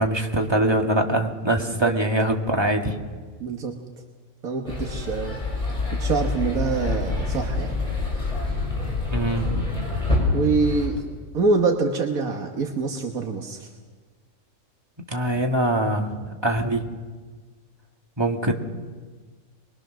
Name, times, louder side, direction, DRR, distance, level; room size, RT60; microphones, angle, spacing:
voice 1, 0.0-2.9 9.1-9.7 15.1-16.2 16.4-16.8 18.2-18.5, right 1 dB, 20° right, 2 dB, 1.9 m, -23 dB
voice 2, 3.4-3.8 4.4-5.4 5.9-7.8 10.3-11.0 11.3-13.7, right 4 dB, 85° right, 2 dB, 1.9 m, -25 dB
sound 1, 4.7-10.9, left 3 dB, 25° left, 6.5 m, -26 dB
25.0 x 22.5 x 6.3 m, 1.5 s
omnidirectional pair, 1.5 m